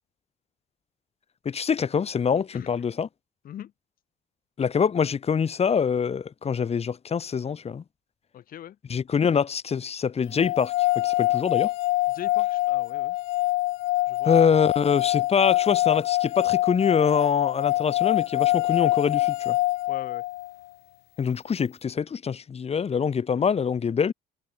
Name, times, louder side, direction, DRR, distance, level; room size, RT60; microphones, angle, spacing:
voice 1, 1.4-3.1 4.6-7.8 8.9-11.7 14.2-19.6 21.2-24.1, left 6 dB, 35° left, 7.8 m, -24 dB
voice 2, 8.3-8.8 12.1-13.2 14.1-14.4 19.9-20.3, left 11 dB, 60° left, 6.0 m, -40 dB
sound 1, 10.4-20.5, left 18 dB, 85° left, 1.6 m, -25 dB
cardioid pair, 110°, 17 cm